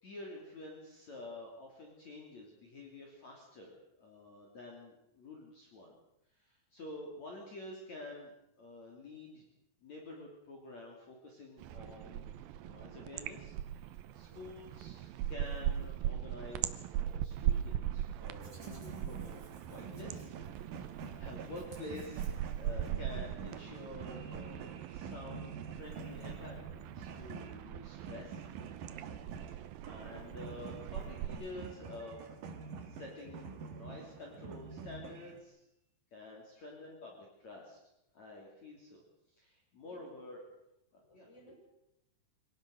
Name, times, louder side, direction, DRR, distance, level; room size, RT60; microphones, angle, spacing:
voice 1, 0.0-5.9 6.3-9.5 9.8-12.4 12.6-19.4 19.7-28.4 29.0-29.2 29.8-32.2 32.9-35.6 36.1-37.8 38.1-39.0 39.3-40.4 40.9-41.3, left 2 dB, 45° left, -1 dB, 4.1 m, -49 dB
sound 1, 11.6-31.3, right 11 dB, 75° right, 2.4 m, -40 dB
voice 2, 14.2-14.6 21.0-21.3 39.8-40.3 41.0-41.5, equal, 5° left, 1 dB, 5.4 m, -61 dB
sound 2, 18.2-35.4, right 5 dB, 55° right, 3.0 m, -47 dB
Hands, 18.4-22.9, right 2 dB, 20° right, 5.8 m, -63 dB
25.5 x 18.0 x 6.5 m, 0.83 s
omnidirectional pair, 4.9 m